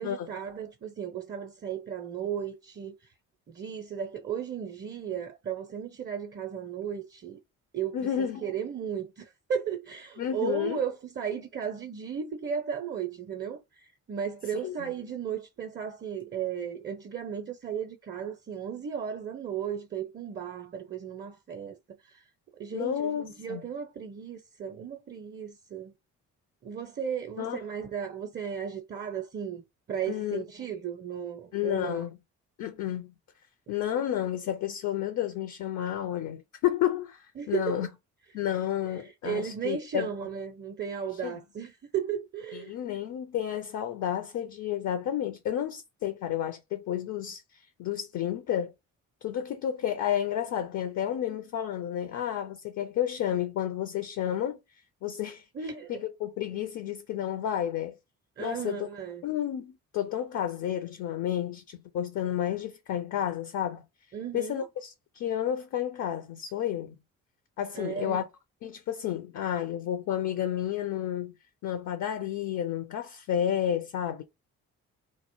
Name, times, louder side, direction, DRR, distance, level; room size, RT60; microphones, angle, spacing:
voice 1, 0.0-2.9 3.5-7.4 7.7-21.8 22.0-22.2 22.6-25.9 26.6-32.1 37.4-37.7 38.8-42.8 55.5-56.0 58.4-59.2 64.1-64.7 67.7-68.2, right 8 dB, 25° right, 0.5 m, -35 dB
voice 2, 7.9-8.4 10.2-10.8 14.5-14.9 22.7-23.6 27.4-27.6 30.1-30.4 31.5-32.2 32.6-33.1 33.7-37.9 38.3-40.1 41.1-41.3 42.5-48.7 49.2-54.6 55.0-55.5 55.9-58.0 58.4-58.9 59.2-63.8 64.3-66.9 67.6-68.2 68.6-71.3 71.6-74.2, left 10 dB, 45° left, 0.5 m, -31 dB
2.1 x 2.0 x 2.9 m
hypercardioid pair, 45°, 42 cm